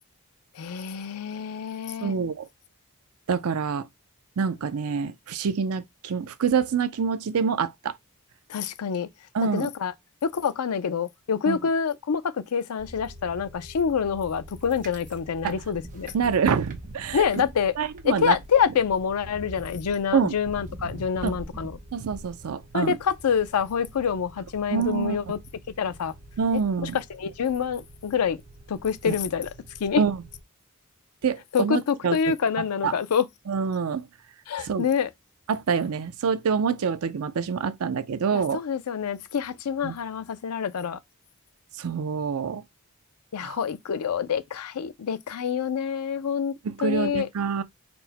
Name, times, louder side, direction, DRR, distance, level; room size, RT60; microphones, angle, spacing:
voice 1, 0.6-2.2 8.5-9.1 9.5-9.9 10.2-16.1 17.1-17.8 18.0-21.8 22.7-25.4 25.8-26.1 26.8-28.4 28.7-29.5 29.8-30.0 31.5-33.3 34.5-35.1 38.3-41.0 43.3-46.5 46.8-47.3, left 7 dB, 85° left, 0.5 m, -26 dB
voice 2, 2.0-2.5 3.3-3.9 4.4-7.9 9.3-9.7 11.5-11.6 15.4-15.5 16.1-17.4 17.8-18.4 20.1-20.3 21.2-21.4 21.9-23.0 24.7-25.2 26.4-27.0 29.0-29.2 30.0-30.2 31.2-32.3 32.8-32.9 33.5-34.1 34.6-34.9 35.5-38.6 39.8-39.9 41.8-42.6 43.4-43.6 46.6-47.6, right 6 dB, 75° right, 0.5 m, -26 dB
sound 1, 12.8-30.4, right 1 dB, 35° right, 0.7 m, -44 dB
4.4 x 2.1 x 3.9 m
head